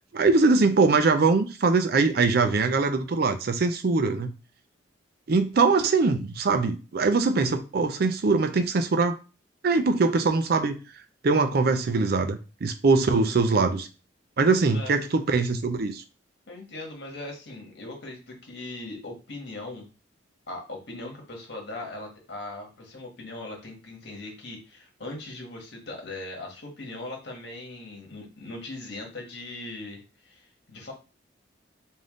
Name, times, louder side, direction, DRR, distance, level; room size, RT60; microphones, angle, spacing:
voice 1, 0.1-4.3 5.3-9.2 9.6-10.8 11.2-13.9 14.4-16.0, right 4 dB, 55° right, 0.4 m, -22 dB
voice 2, 16.5-19.9 20.5-30.9, left 2 dB, 60° left, 1.4 m, -39 dB
3.5 x 2.6 x 3.7 m
head